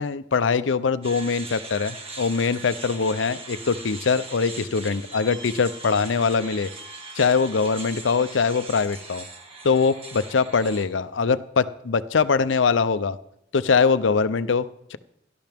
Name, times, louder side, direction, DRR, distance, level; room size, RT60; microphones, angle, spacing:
voice 1, 0.0-6.7 7.1-9.3 9.6-13.2 13.5-15.0, left 5 dB, 75° left, 14 dB, 0.6 m, -22 dB
sound 1, 1.0-10.9, right 3 dB, 30° right, 1.8 m, -40 dB
17.5 x 12.0 x 3.5 m, 0.77 s
head